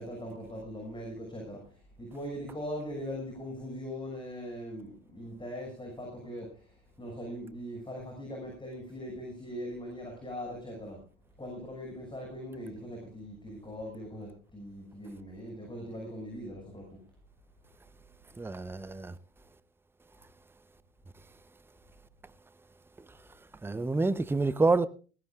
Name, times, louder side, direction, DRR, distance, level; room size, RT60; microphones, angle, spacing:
voice 1, 0.0-11.0 11.4-17.0, equal, 15° left, 6.4 m, -41 dB
voice 2, 18.4-19.2 23.6-24.9, right 3 dB, 5° right, 0.8 m, -27 dB
19.5 x 17.0 x 2.4 m
hypercardioid pair, 90°, 36 cm